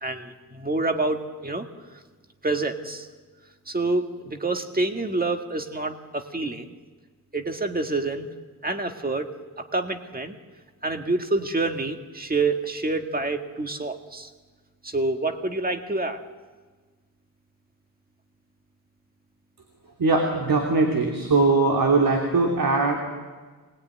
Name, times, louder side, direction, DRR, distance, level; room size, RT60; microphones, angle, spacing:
voice 1, 0.0-1.7 2.4-3.1 3.7-6.7 7.3-8.3 8.6-9.3 9.6-10.4 10.8-14.3 14.8-16.2, right 2 dB, 25° right, 5 dB, 1.7 m, -27 dB
voice 2, 20.0-23.0, right 3 dB, 75° right, 1 dB, 3.0 m, -21 dB
24.5 x 20.0 x 9.4 m, 1.4 s
wide cardioid pair, 150°, 36 cm